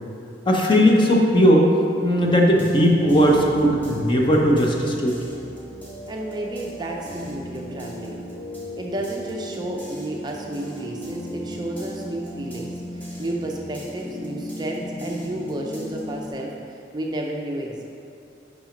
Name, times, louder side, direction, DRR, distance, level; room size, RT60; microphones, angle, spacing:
voice 1, 0.5-1.7 2.0-5.2, equal, 25° left, -1 dB, 0.8 m, -17 dB
sound 1, 2.1-16.3, equal, 10° left, 1.2 m, -36 dB
voice 2, 6.1-8.2 8.8-17.8, right 1 dB, 25° right, 0 dB, 0.5 m, -32 dB
6.1 x 5.5 x 5.1 m, 2.6 s
head